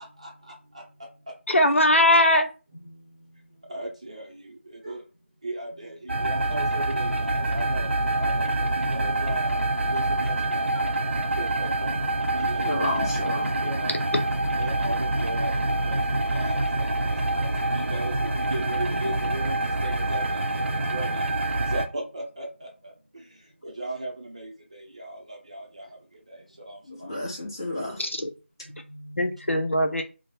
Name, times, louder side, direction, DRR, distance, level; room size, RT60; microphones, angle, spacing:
voice 1, 1.5-2.5 28.0-28.3 29.2-30.0, left 1 dB, 80° left, 0.7 m, -20 dB
voice 2, 3.7-4.2 4.8-5.0 5.4-5.9 6.2-7.9 8.1-8.4 8.9-9.6 9.9-10.6 11.4-11.7 12.3-13.1 13.6-14.0 14.6-15.5 15.8-16.0 16.3-16.6 17.4-17.5 17.7-18.1 18.5-19.6 19.8-20.2 20.9-21.1 21.7-22.4 23.8-24.5 25.5-25.6, right 1 dB, 30° right, 0.7 m, -35 dB
sound 1, 6.1-21.9, right 2 dB, 70° right, 0.6 m, -26 dB
voice 3, 12.6-13.5 26.8-28.1, left 1 dB, 20° left, 1.0 m, -31 dB
3.1 x 2.1 x 2.9 m
figure-of-eight pair, 170°, 7 cm